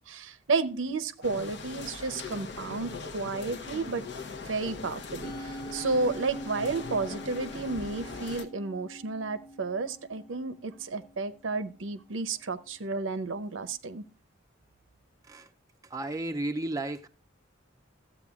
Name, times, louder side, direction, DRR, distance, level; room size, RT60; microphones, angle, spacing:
voice 1, 0.1-4.0 4.5-14.0, right 3 dB, 70° right, 12 dB, 0.6 m, -32 dB
sound 1, 1.2-8.4, left 4 dB, 60° left, 0.8 m, -41 dB
Musical instrument, 5.2-11.6, equal, 85° left, 1.1 m, -44 dB
voice 2, 15.9-17.1, right 2 dB, 15° right, 5 dB, 0.4 m, -33 dB
12.5 x 8.2 x 2.4 m, 0.33 s
head